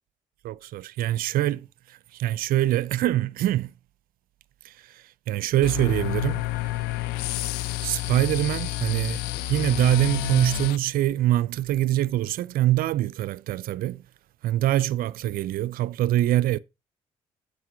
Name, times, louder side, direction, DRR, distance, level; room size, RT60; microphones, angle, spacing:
voice 1, 0.4-3.7 4.6-6.4 7.8-14.0 14.4-16.6, right 14 dB, 65° right, 0.4 m, -24 dB
sound 1, 5.6-10.8, left 16 dB, 75° left, 0.5 m, -29 dB
7.9 x 5.3 x 4.9 m
hypercardioid pair, 50°, 16 cm